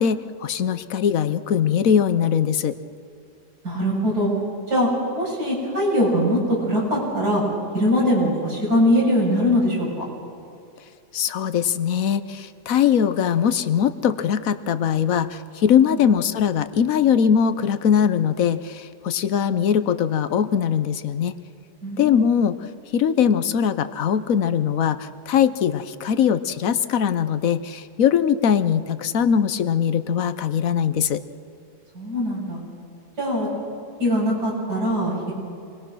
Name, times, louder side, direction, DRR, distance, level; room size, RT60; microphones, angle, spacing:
voice 1, 0.0-2.7 11.1-21.3 22.0-22.6 22.9-31.2, left 8 dB, 65° left, 12 dB, 1.1 m, -21 dB
voice 2, 3.6-4.3 4.7-4.9 5.1-6.4 6.7-7.4 7.7-10.0 15.9-16.0 21.8-22.2 31.9-32.6 33.2-33.5 34.0-35.3, equal, 80° right, -5 dB, 7.5 m, -21 dB
27.0 x 20.5 x 6.2 m, 2.6 s
omnidirectional pair, 1.7 m